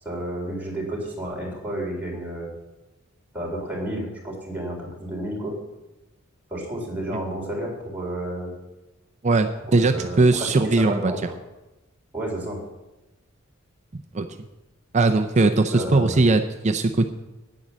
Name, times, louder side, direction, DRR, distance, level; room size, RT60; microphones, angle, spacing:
voice 1, 0.0-2.5 3.3-5.5 6.5-8.5 9.6-11.4 12.1-12.6 15.7-16.2, right 1 dB, 10° right, -3 dB, 3.8 m, -31 dB
voice 2, 9.2-11.1 13.9-14.3 14.9-17.1, right 3 dB, 35° right, 7 dB, 0.5 m, -20 dB
9.8 x 9.2 x 7.4 m, 1.0 s
head